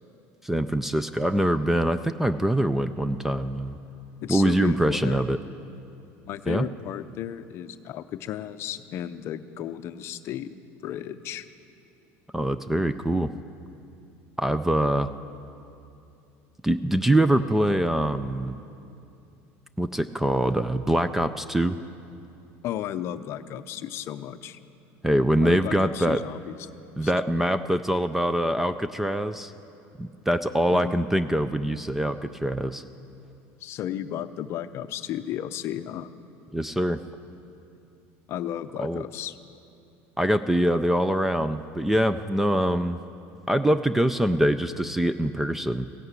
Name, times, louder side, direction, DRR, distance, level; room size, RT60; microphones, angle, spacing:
voice 1, 0.4-3.8 4.3-5.4 6.5-6.7 12.3-13.3 14.4-15.1 16.6-18.6 19.8-21.8 25.0-26.2 27.0-29.5 30.0-32.8 36.5-37.0 38.8-39.1 40.2-43.0 43.5-45.9, right 1 dB, 5° right, 12 dB, 0.3 m, -24 dB
voice 2, 4.2-5.2 6.3-10.5 10.8-11.5 22.6-24.6 25.4-26.6 27.0-27.1 30.7-30.9 33.6-36.1 38.3-39.4, left 11 dB, 45° left, 12 dB, 0.6 m, -34 dB
16.0 x 10.5 x 8.2 m, 2.7 s
cardioid pair, 150°, 6 cm